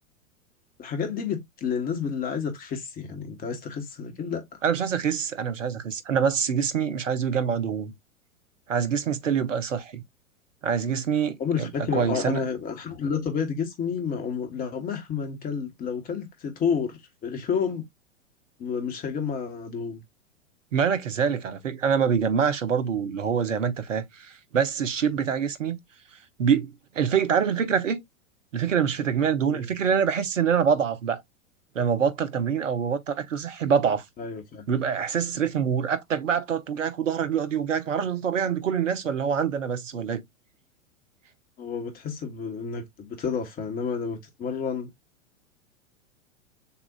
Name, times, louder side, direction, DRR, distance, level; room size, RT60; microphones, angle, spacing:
voice 1, 0.8-4.6 11.4-17.8 18.6-20.0 29.5-29.7 34.2-34.6 41.6-44.9, left 6 dB, 20° left, 1.2 m, -30 dB
voice 2, 4.6-7.9 8.7-10.0 10.6-12.4 20.7-25.8 26.4-28.0 28.5-31.2 31.7-34.0 34.7-40.2, right 7 dB, 70° right, 1.0 m, -25 dB
6.8 x 2.4 x 2.4 m
figure-of-eight pair, 95°, 40 cm